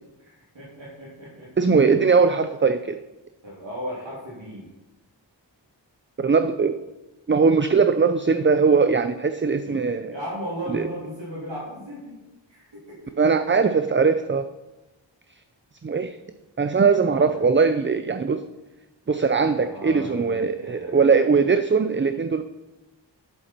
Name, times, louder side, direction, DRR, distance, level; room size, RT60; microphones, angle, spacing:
voice 1, 0.2-1.5 1.8-2.1 3.4-4.7 9.6-12.2 12.5-13.2 17.1-17.5 19.6-21.1, equal, 80° right, -6 dB, 3.1 m, -36 dB
voice 2, 1.6-3.0 6.2-6.8 7.3-10.1 10.7-10.9 13.2-14.4 15.8-16.2 16.6-18.4 19.1-22.4, right 5 dB, 25° right, 9 dB, 0.5 m, -20 dB
10.5 x 8.2 x 4.5 m, 1.0 s
wide cardioid pair, 55°, 45 cm